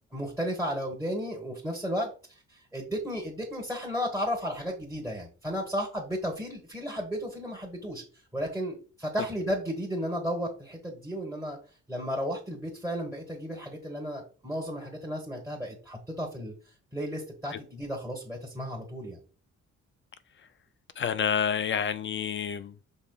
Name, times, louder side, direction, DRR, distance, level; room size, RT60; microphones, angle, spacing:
voice 1, 0.1-8.0 8.3-11.6 11.9-16.5 16.9-19.2, equal, 10° right, 1.3 m, -34 dB
voice 2, 21.0-22.8, left 7 dB, 40° left, 0.4 m, -29 dB
5.3 x 4.2 x 2.3 m
cardioid pair, 90°, 30 cm